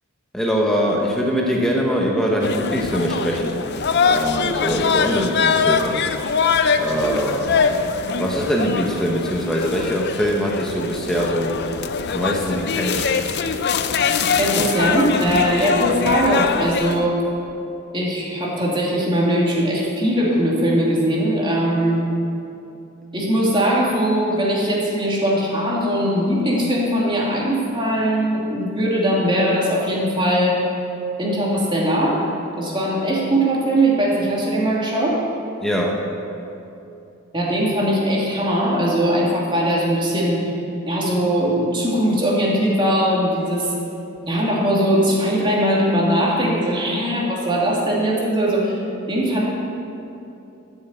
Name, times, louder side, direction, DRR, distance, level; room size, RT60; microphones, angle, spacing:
voice 1, 0.3-3.6 4.1-6.0 6.7-7.7 8.0-11.6 12.1-13.2 35.6-36.0, equal, 5° left, -2 dB, 1.0 m, -22 dB
sound 1, 2.4-17.0, left 5 dB, 50° left, 0.6 m, -22 dB
voice 2, 14.4-17.2 17.9-22.0 23.1-30.5 31.2-32.2 32.6-35.2 37.3-40.4 40.8-43.7 44.3-48.8 49.1-49.5, equal, 25° right, -4 dB, 2.6 m, -20 dB
13.5 x 7.1 x 8.1 m, 2.8 s
head